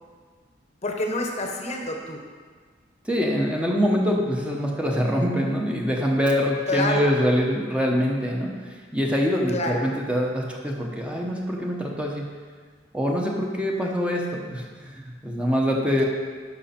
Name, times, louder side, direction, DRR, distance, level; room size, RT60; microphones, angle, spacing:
voice 1, 0.8-2.2 6.7-7.1 9.5-9.8 16.0-16.1, left 1 dB, 35° left, 2 dB, 0.9 m, -27 dB
voice 2, 3.0-8.5 8.9-12.3 12.9-16.0, equal, 5° right, -1 dB, 0.9 m, -24 dB
11.0 x 6.2 x 4.4 m, 1.5 s
head